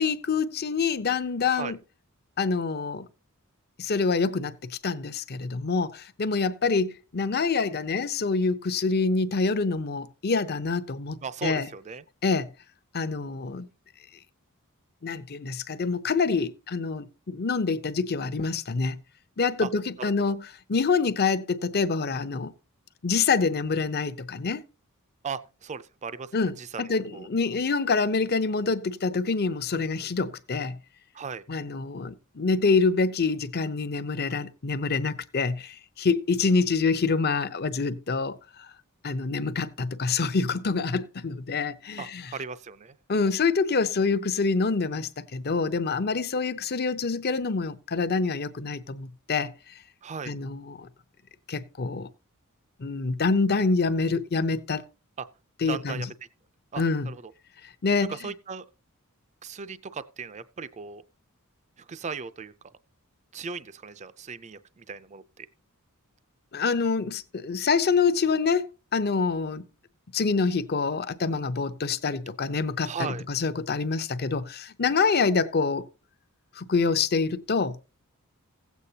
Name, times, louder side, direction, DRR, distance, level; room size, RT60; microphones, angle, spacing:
voice 1, 0.0-1.8 2.4-3.1 3.8-11.7 12.2-12.5 12.9-13.7 15.0-19.0 19.4-22.5 23.0-24.6 26.3-30.8 31.5-38.7 39.0-42.3 43.1-49.7 50.3-50.9 51.5-52.1 52.8-54.8 55.6-56.1 56.8-57.1 57.8-58.1 66.5-68.7 68.9-69.7 70.1-75.9 76.6-77.8, left 4 dB, 45° left, 0.7 m, -26 dB
voice 2, 11.2-12.0 19.6-19.7 20.0-20.4 25.2-27.3 31.1-31.4 42.0-43.0 50.0-50.3 55.2-55.3 55.7-56.1 56.7-57.3 58.1-58.6 59.4-61.0 61.8-62.5 63.3-65.5 72.8-73.2, right 5 dB, 30° right, 0.4 m, -37 dB
16.5 x 8.2 x 2.8 m
head